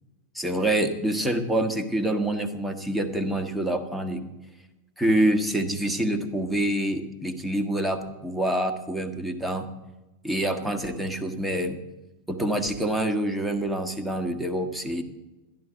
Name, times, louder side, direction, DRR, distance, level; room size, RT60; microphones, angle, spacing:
voice 1, 0.3-4.2 5.0-9.7 10.2-11.8 12.3-15.0, right 1 dB, 5° right, 6 dB, 1.3 m, -26 dB
13.5 x 11.5 x 5.0 m, 1.0 s
figure-of-eight pair, 90°, 0 cm